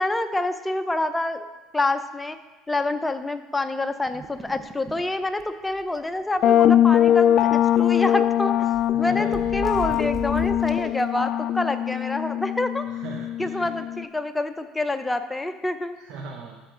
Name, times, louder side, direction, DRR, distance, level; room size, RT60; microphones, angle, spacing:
voice 1, 0.0-1.4 1.7-2.4 2.7-7.4 7.8-8.6 9.0-12.9 13.4-16.0, left 2 dB, 10° left, 9 dB, 0.6 m, -27 dB
sound 1, 4.1-5.1 5.4-5.5 5.8-6.0 7.2-8.2 8.7-11.0, right 4 dB, 25° right, 0.7 m, -38 dB
sound 2, 6.4-14.0, left 11 dB, 55° left, 0.3 m, -21 dB
voice 2, 8.9-9.6 12.9-13.7 16.0-16.6, right 4 dB, 65° right, 0 dB, 0.9 m, -39 dB
13.0 x 4.5 x 3.8 m, 1.2 s
hypercardioid pair, 75°, 0 cm